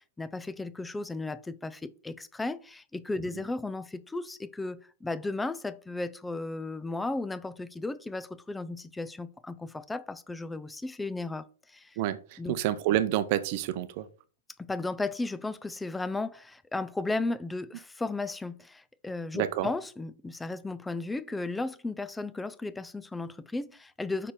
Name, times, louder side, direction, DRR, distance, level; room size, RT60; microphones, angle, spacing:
voice 1, 0.2-12.0 12.4-12.6 14.6-24.3, left 2 dB, 5° left, 0.4 m, -35 dB
voice 2, 12.0-14.1 19.3-19.7, right 13 dB, 45° right, 0.7 m, -28 dB
5.7 x 4.3 x 4.9 m
hypercardioid pair, 140°, 0 cm